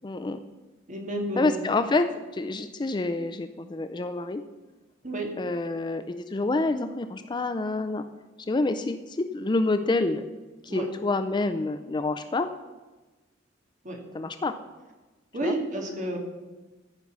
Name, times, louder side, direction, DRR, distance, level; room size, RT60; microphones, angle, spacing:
voice 1, 0.0-0.4 1.4-2.1 2.3-4.4 5.4-8.0 8.5-10.2 10.6-12.5 14.1-14.5 15.4-15.5, left 2 dB, 25° left, 9 dB, 0.4 m, -27 dB
voice 2, 0.9-1.6 5.0-5.3 10.7-10.9 13.8-14.0 15.3-16.2, right 1 dB, 40° right, 2 dB, 1.9 m, -30 dB
14.0 x 5.4 x 6.0 m, 1.2 s
head